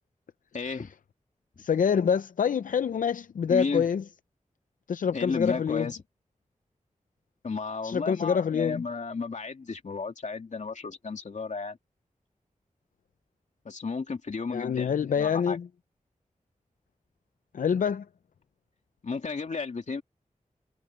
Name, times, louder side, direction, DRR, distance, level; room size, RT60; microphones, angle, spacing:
voice 1, 0.5-0.9 3.5-3.9 5.1-6.0 7.4-11.8 13.6-15.6 19.0-20.0, left 4 dB, 65° left, 2.6 m, -33 dB
voice 2, 1.6-4.0 4.9-5.9 7.8-8.8 14.5-15.6 17.5-18.0, left 7 dB, 85° left, 0.5 m, -26 dB
wide cardioid pair, 105°, 13 cm